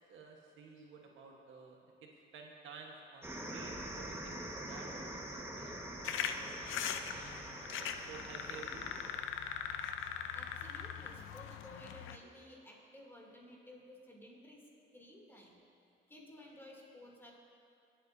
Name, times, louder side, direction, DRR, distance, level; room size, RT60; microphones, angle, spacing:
voice 1, 0.1-6.1 6.5-7.5 7.8-8.9, right 5 dB, 80° right, 0 dB, 1.4 m, -53 dB
sound 1, 3.2-9.1, right 1 dB, 10° right, 1.5 m, -45 dB
sound 2, 6.0-12.2, left 8 dB, 85° left, 0.6 m, -41 dB
voice 2, 10.3-14.6 14.9-15.6 16.1-17.3, left 1 dB, 10° left, -3 dB, 2.9 m, -55 dB
24.5 x 8.5 x 2.7 m, 2.5 s
cardioid pair, 90°, 20 cm